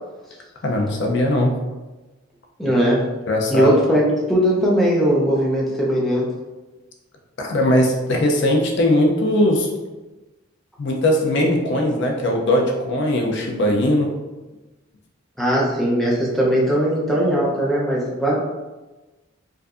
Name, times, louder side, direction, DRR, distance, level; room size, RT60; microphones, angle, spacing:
voice 1, 0.6-1.5 3.3-3.8 7.4-9.7 10.8-14.1, left 1 dB, 55° left, 0 dB, 0.5 m, -19 dB
voice 2, 2.6-3.0 3.5-6.3 15.4-18.4, equal, ahead, -6 dB, 0.6 m, -19 dB
4.6 x 2.6 x 2.4 m, 1.2 s
head